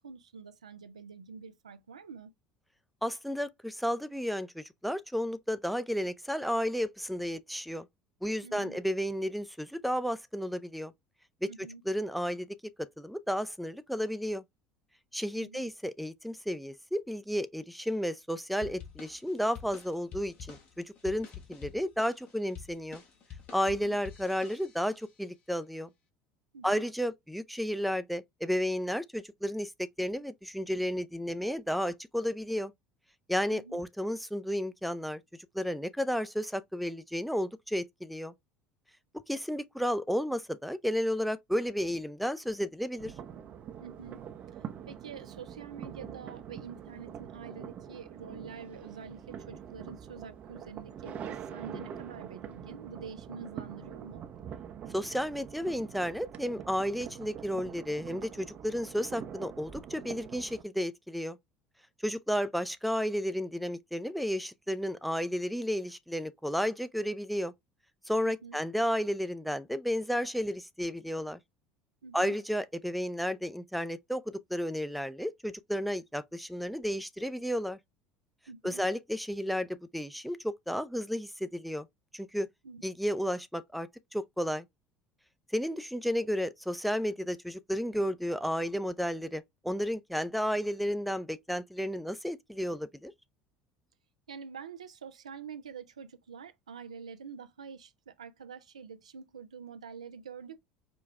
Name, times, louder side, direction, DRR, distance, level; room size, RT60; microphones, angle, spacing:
voice 1, 0.0-2.3 8.4-8.8 11.5-11.8 15.3-15.7 23.6-24.0 26.5-26.9 33.5-33.8 43.8-44.2 44.9-54.2 68.2-68.6 72.0-72.4 78.5-78.8 82.6-82.8 94.3-100.6, right 6 dB, 85° right, 0.4 m, -46 dB
voice 2, 3.0-7.9 8.2-10.9 11.4-11.5 11.9-12.5 12.8-14.4 15.1-23.0 23.5-25.9 26.6-32.7 33.3-35.2 35.5-38.3 39.3-43.1 54.9-61.4 62.0-67.5 68.1-71.4 72.1-77.8 78.6-81.9 82.1-82.5 82.8-84.7 85.5-93.1, equal, ahead, 0.5 m, -32 dB
sound 1, 18.6-25.0, left 8 dB, 45° left, 1.3 m, -48 dB
sound 2, 43.0-60.6, right 8 dB, 45° right, 0.6 m, -44 dB
5.0 x 2.3 x 3.2 m
hypercardioid pair, 70°, 3 cm